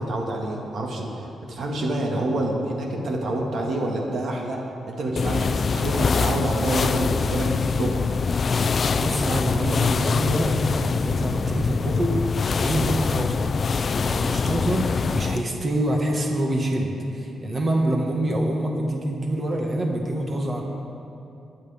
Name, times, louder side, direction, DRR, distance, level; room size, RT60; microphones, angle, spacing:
voice 1, 0.0-4.6 4.8-8.0, right 1 dB, 60° right, -1 dB, 2.0 m, -27 dB
sound 1, 5.2-15.5, left 5 dB, 40° left, 0.3 m, -24 dB
voice 2, 8.9-12.2 12.6-13.5 14.0-20.6, right 1 dB, 30° right, 0 dB, 1.7 m, -26 dB
22.0 x 10.5 x 3.6 m, 2.7 s
cardioid pair, 130°, 0 cm